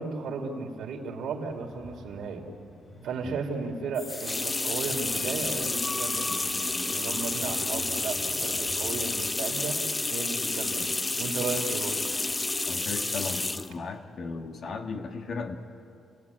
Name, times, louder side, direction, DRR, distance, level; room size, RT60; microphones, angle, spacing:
voice 1, 0.0-2.5 3.0-9.8 10.1-10.9 11.2-12.0, right 4 dB, 80° right, 2 dB, 3.4 m, -35 dB
sound 1, 1.5-9.4, left 2 dB, 35° left, 4.0 m, -46 dB
sound 2, 3.9-13.7, left 2 dB, 15° left, 0.7 m, -30 dB
voice 2, 12.7-15.6, left 4 dB, 55° left, 4 dB, 1.7 m, -36 dB
29.0 x 16.5 x 9.8 m, 2.6 s
cardioid pair, 135°, 0 cm